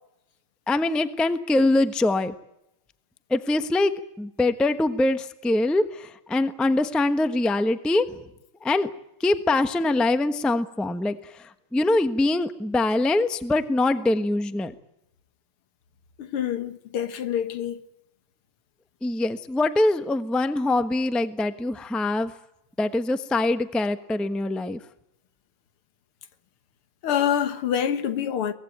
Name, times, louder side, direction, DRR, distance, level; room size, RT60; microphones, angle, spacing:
voice 1, 0.7-2.3 3.3-8.1 8.6-8.9 9.2-14.7 19.0-22.3 22.8-24.8, left 2 dB, ahead, 0.6 m, -23 dB
voice 2, 16.2-17.8 27.0-28.5, left 9 dB, 85° left, 2.2 m, -26 dB
23.0 x 18.5 x 9.3 m
omnidirectional pair, 2.3 m